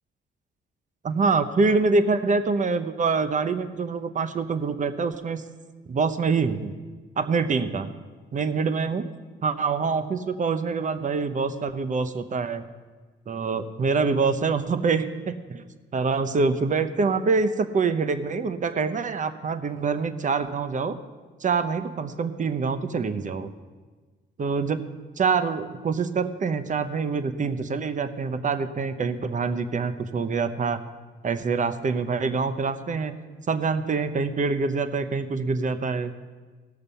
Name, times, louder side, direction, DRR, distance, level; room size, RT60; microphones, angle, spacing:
voice 1, 1.0-5.4 5.9-6.7 7.2-7.9 8.3-9.0 9.4-12.6 13.3-15.6 15.9-21.0 21.4-23.5 24.4-24.9 25.2-30.8 31.2-33.2 33.5-36.1, right 4 dB, 40° right, 11 dB, 0.8 m, -25 dB
17.0 x 6.7 x 5.6 m, 1.4 s
cardioid pair, 90°, 20 cm